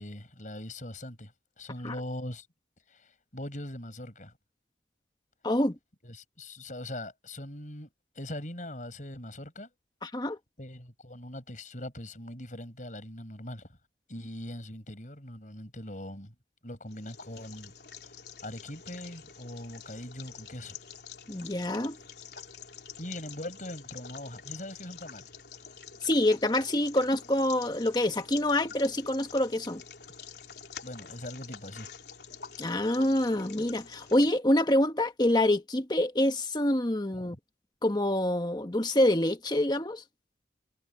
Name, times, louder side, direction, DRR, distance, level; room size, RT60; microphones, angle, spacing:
voice 1, 0.0-2.5 2.9-4.3 6.0-7.9 8.1-9.7 10.6-13.7 14.1-16.3 16.6-17.7 18.0-18.1 18.4-20.8 23.0-25.3 30.8-31.9 37.1-37.4, left 1 dB, 45° left, 6.7 m, -41 dB
voice 2, 5.4-5.8 10.0-10.4 21.3-22.0 26.0-29.8 32.6-37.4 37.8-40.0, left 1 dB, 25° left, 1.4 m, -26 dB
sound 1, 16.9-34.3, left 7 dB, 70° left, 3.5 m, -47 dB
head